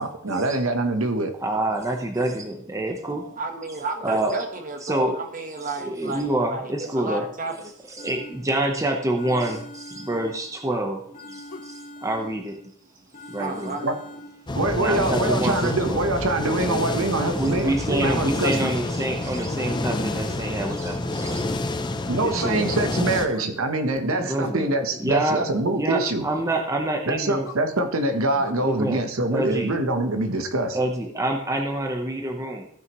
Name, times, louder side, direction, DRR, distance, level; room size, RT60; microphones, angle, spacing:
voice 1, 0.0-1.3 13.8-13.9 14.5-18.7 22.1-26.2 27.1-30.8, right 2 dB, 70° right, 6 dB, 1.0 m, -24 dB
voice 2, 1.4-3.4 4.0-4.4 4.8-5.2 5.8-7.2 7.9-11.0 11.3-12.6 13.3-13.8 14.8-16.0 17.3-21.5 22.1-22.7 24.2-24.7 25.0-25.5 25.7-27.5 28.6-29.0 29.3-29.8 30.7-32.7, right 1 dB, 15° right, 2 dB, 0.9 m, -27 dB
voice 3, 3.4-7.7 13.0-13.1 13.4-13.9, right 3 dB, 35° right, 5 dB, 1.3 m, -32 dB
sound 1, 8.0-8.7 9.2-10.7 11.1-12.7 13.1-14.6, left 1 dB, 35° left, 1.3 m, -43 dB
sound 2, 11.5-11.8 13.4-14.1 15.2-15.5 17.6-17.9 19.9-20.2 22.8-23.5 24.4-24.7 26.5-26.8 27.4-27.7 28.4-28.5, left 3 dB, 60° left, 0.8 m, -41 dB
sound 3, 14.5-23.3, left 2 dB, 20° left, 0.5 m, -28 dB
15.0 x 6.5 x 3.1 m, 0.67 s
head